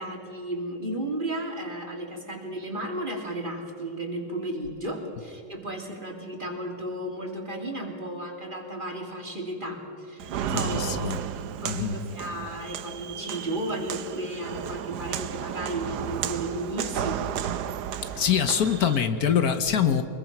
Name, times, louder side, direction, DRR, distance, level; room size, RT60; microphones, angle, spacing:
voice 1, 0.0-11.2 11.6-17.2, right 1 dB, 30° right, 1 dB, 3.0 m, -34 dB
Walk footsteps, 10.2-19.0, right 9 dB, 85° right, 1.4 m, -33 dB
voice 2, 10.5-11.2 11.6-11.9 18.1-20.0, left 8 dB, 70° left, 9 dB, 1.5 m, -24 dB
24.5 x 21.5 x 6.0 m, 2.6 s
omnidirectional pair, 1.7 m